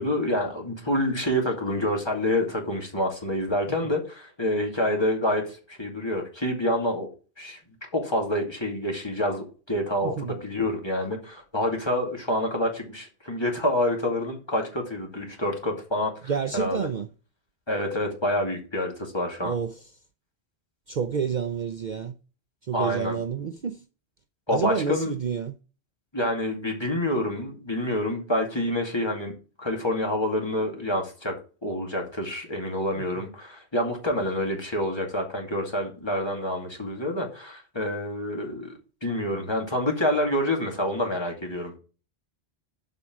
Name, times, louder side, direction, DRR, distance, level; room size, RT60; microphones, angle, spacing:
voice 1, 0.0-7.1 7.4-16.9 17.7-19.5 22.7-23.2 24.5-25.1 26.1-41.7, left 1 dB, 25° left, 2.4 m, -27 dB
voice 2, 10.0-10.4 16.2-17.1 19.4-19.9 20.9-22.1 22.7-23.8 24.5-25.5 32.9-33.1, right 6 dB, 50° right, 0.7 m, -29 dB
7.8 x 5.2 x 7.2 m
omnidirectional pair, 1.1 m